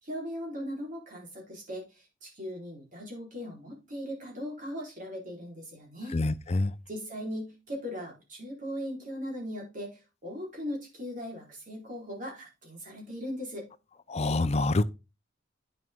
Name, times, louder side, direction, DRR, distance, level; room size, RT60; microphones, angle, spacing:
voice 1, 0.0-1.8 2.2-6.2 6.9-13.6, equal, 45° right, 3.9 m, -38 dB
voice 2, 6.1-6.7 14.1-14.8, left 2 dB, 35° left, 0.5 m, -26 dB
9.1 x 6.5 x 3.6 m
head